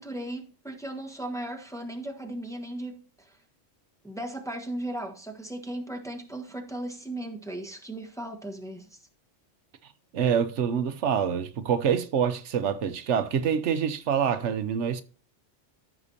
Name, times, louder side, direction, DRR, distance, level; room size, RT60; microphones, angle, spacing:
voice 1, 0.0-3.4 4.0-9.0, right 1 dB, 5° left, 1.3 m, -36 dB
voice 2, 10.1-15.0, right 7 dB, 80° right, 1.1 m, -26 dB
15.0 x 6.1 x 2.7 m
omnidirectional pair, 1.2 m